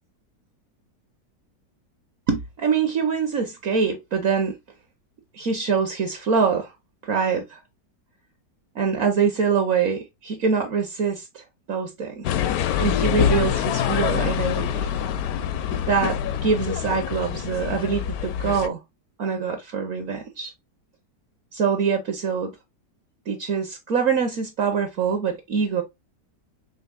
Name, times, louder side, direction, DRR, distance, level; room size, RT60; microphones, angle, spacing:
voice 1, 2.3-4.6 5.3-6.7 7.0-7.6 8.7-12.3 12.8-14.9 15.9-18.8 19.2-20.5 21.5-22.5 23.3-25.8, right 6 dB, 60° right, 1.0 m, -24 dB
sound 1, 12.2-18.7, left 9 dB, 70° left, 0.9 m, -25 dB
5.3 x 3.2 x 2.2 m
omnidirectional pair, 1.9 m